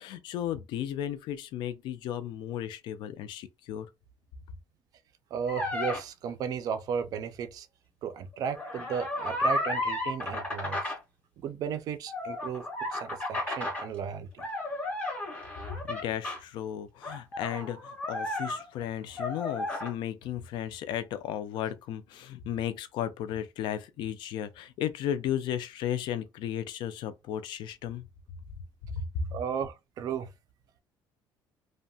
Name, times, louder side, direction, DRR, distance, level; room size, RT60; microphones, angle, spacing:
voice 1, 0.0-3.9 15.9-28.1 28.8-29.3, left 10 dB, 60° left, 0.3 m, -34 dB
voice 2, 5.3-7.7 8.0-10.8 11.4-12.6 12.9-14.4 29.3-30.3, right 7 dB, 45° right, 0.4 m, -34 dB
sound 1, 5.5-6.0 8.4-11.0 12.1-13.9 14.4-16.4 17.0-18.9 19.2-19.9, left 2 dB, 15° left, 0.6 m, -33 dB
2.7 x 2.1 x 2.6 m
cardioid pair, 175°, 9 cm